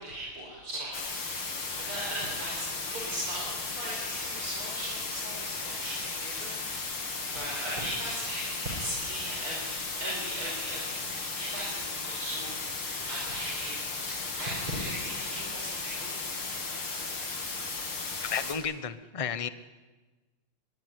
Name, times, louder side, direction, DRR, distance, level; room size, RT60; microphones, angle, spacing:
voice 1, 0.0-16.1, right 1 dB, 90° right, -3 dB, 6.3 m, -38 dB
sound 1, 0.9-18.5, left 4 dB, 85° left, 4.0 m, -35 dB
voice 2, 18.3-19.5, left 7 dB, 35° left, 13 dB, 0.5 m, -32 dB
23.0 x 20.5 x 9.5 m, 1.2 s
omnidirectional pair, 2.3 m